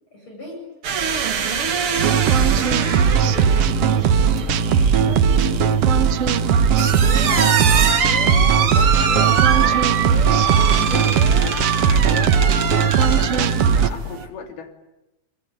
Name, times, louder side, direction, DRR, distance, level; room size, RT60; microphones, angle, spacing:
voice 1, 0.1-0.6 1.0-2.1 2.4-5.8, equal, 30° left, -1 dB, 8.8 m, -39 dB
sound 1, 0.8-14.3, right 7 dB, 45° right, 2.0 m, -24 dB
sound 2, 2.0-13.9, right 7 dB, 80° right, 1.3 m, -18 dB
voice 2, 6.8-7.7 8.2-14.7, left 6 dB, 80° left, 5 dB, 4.8 m, -36 dB
Alarm, 7.1-13.1, left 7 dB, 65° left, 2.9 m, -37 dB
29.0 x 22.0 x 9.1 m, 0.96 s
omnidirectional pair, 4.4 m